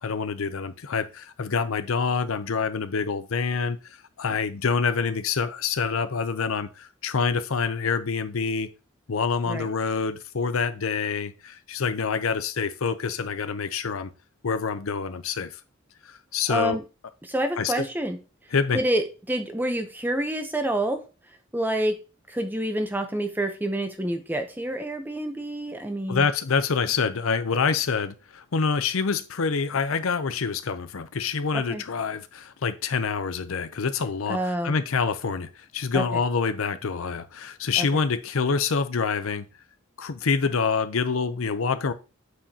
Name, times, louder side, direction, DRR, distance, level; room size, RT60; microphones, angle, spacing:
voice 1, 0.0-8.7 9.1-14.1 14.4-15.5 16.0-16.8 17.6-17.9 18.5-18.8 26.1-39.5 40.0-41.9, left 5 dB, 80° left, 0.6 m, -26 dB
voice 2, 16.5-16.8 17.2-18.2 18.7-21.0 21.5-22.0 22.3-26.3 31.5-31.8 34.3-34.7 35.9-36.0 37.8-38.0, right 1 dB, 10° right, 0.7 m, -28 dB
7.9 x 4.9 x 2.8 m
head